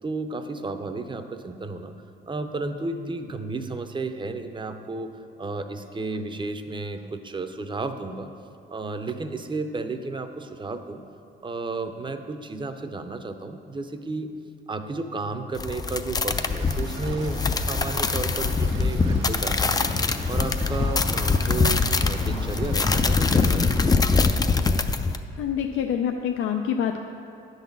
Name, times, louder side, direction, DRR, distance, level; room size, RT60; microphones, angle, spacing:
voice 1, 0.0-2.0 2.3-5.1 5.4-8.3 8.7-11.0 11.4-14.3 14.7-19.9 20.3-23.8, right 3 dB, 25° right, 8 dB, 0.6 m, -32 dB
sound 1, 15.5-25.2, left 4 dB, 20° left, 0.4 m, -23 dB
sound 2, 16.3-23.9, right 3 dB, 90° right, 1.0 m, -42 dB
voice 2, 25.4-27.0, left 8 dB, 90° left, 4 dB, 0.4 m, -26 dB
10.0 x 4.0 x 7.1 m, 2.5 s
cardioid pair, 90°, 20 cm